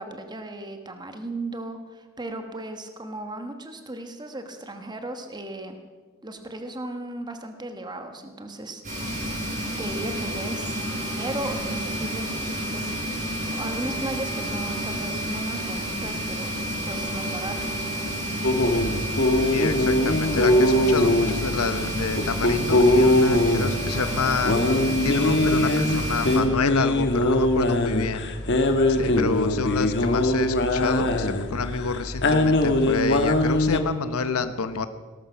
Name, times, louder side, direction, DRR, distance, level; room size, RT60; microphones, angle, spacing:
voice 1, 0.0-5.8 6.2-8.8 9.8-13.2 13.5-16.6 16.8-17.7, right 2 dB, 20° right, 6 dB, 1.2 m, -36 dB
sound 1, 8.8-26.4, right 1 dB, 35° right, 6.9 m, -30 dB
sound 2, 18.4-33.8, left 1 dB, 55° left, 1.4 m, -22 dB
voice 2, 19.5-28.2 28.6-34.9, left 4 dB, 80° left, 11 dB, 0.8 m, -28 dB
18.0 x 13.0 x 6.1 m, 1.4 s
head